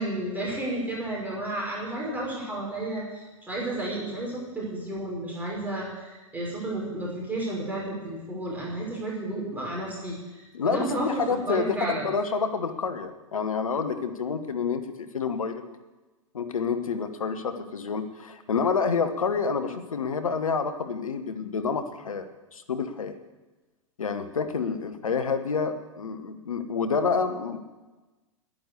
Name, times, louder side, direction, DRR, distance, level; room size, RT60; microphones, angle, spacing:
voice 1, 0.0-12.1, right 1 dB, 10° right, -4 dB, 5.5 m, -32 dB
voice 2, 10.5-15.6 16.3-22.3 22.5-23.1 24.0-27.6, left 5 dB, 80° left, 9 dB, 1.2 m, -28 dB
11.0 x 10.0 x 8.4 m, 1.2 s
hypercardioid pair, 105°, 17 cm